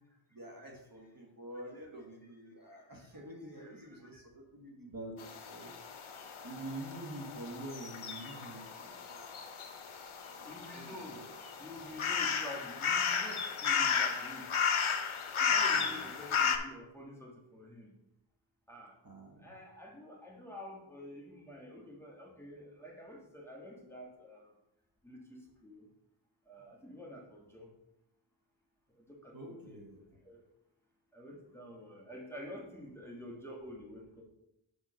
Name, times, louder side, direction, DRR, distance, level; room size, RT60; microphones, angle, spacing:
voice 1, 0.3-5.7 6.4-9.2 9.6-9.7 10.3-11.3 15.7-16.1 19.0-19.5 29.3-30.0, right 1 dB, 45° right, 0 dB, 1.4 m, -47 dB
sound 1, 5.2-16.6, left 6 dB, 90° left, 0.7 m, -34 dB
voice 2, 10.4-11.2 11.6-14.5 15.4-17.9 18.7-18.9 19.4-24.5 25.0-25.9 26.5-27.7 29.0-29.8 30.2-30.4 31.1-34.2, left 1 dB, 5° left, -2 dB, 1.5 m, -49 dB
6.6 x 3.6 x 6.2 m, 0.85 s
wide cardioid pair, 75°, 48 cm